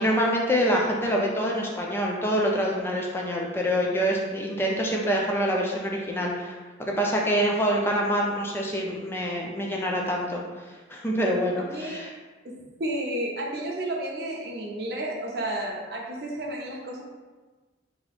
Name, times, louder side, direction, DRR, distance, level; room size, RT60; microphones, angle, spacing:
voice 1, 0.0-10.4 10.9-12.1, equal, 10° left, -1 dB, 0.4 m, -26 dB
voice 2, 12.4-17.0, right 1 dB, 60° right, -2 dB, 0.6 m, -32 dB
2.7 x 2.4 x 4.1 m, 1.3 s
head